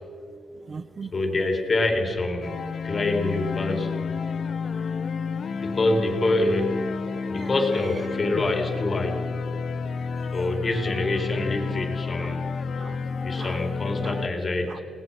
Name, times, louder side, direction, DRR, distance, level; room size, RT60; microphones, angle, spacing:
voice 1, 0.6-1.2 7.3-7.5 10.3-10.4 12.2-12.4 12.8-13.7 14.0-14.2 14.7-14.8, right 5 dB, 40° right, 0.8 m, -41 dB
voice 2, 1.1-3.9 5.6-6.8 7.3-9.2 10.3-12.5 13.2-14.8, left 2 dB, 35° left, 4.2 m, -26 dB
sound 1, 2.4-14.3, left 5 dB, 55° left, 1.2 m, -30 dB
29.5 x 20.0 x 5.9 m
cardioid pair, 120°, 0 cm